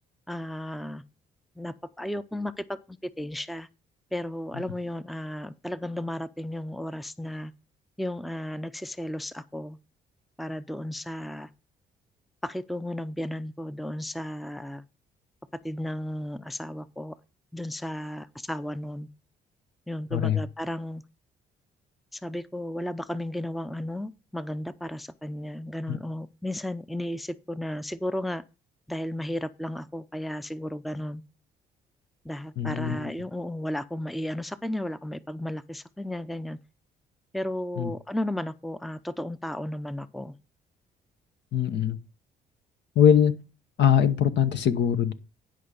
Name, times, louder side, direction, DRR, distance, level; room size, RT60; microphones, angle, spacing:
voice 1, 0.3-1.0 1.6-3.7 4.1-7.5 8.0-9.8 10.4-11.5 12.4-14.8 15.6-17.2 17.5-19.1 19.9-21.0 22.1-28.4 28.9-31.2 32.2-36.6 37.3-40.4, left 1 dB, ahead, 0.6 m, -34 dB
voice 2, 32.6-33.1 37.8-37.9 41.5-42.0 42.9-43.3 43.8-45.1, left 9 dB, 65° left, 1.1 m, -22 dB
11.0 x 5.2 x 5.3 m
hypercardioid pair, 55°, 20 cm